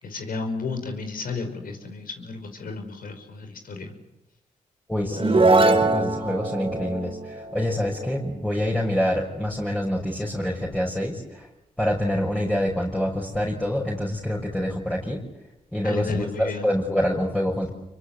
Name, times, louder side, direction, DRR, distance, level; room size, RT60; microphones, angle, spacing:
voice 1, 0.0-3.9 15.8-16.7, left 3 dB, 65° left, 6 dB, 5.5 m, -33 dB
voice 2, 4.9-11.5 11.8-15.2 15.7-17.7, equal, 5° left, -3 dB, 6.3 m, -26 dB
sound 1, 5.1-8.7, right 3 dB, 35° right, 3.6 m, -23 dB
26.5 x 24.0 x 8.3 m, 0.91 s
supercardioid pair, 50°, 16 cm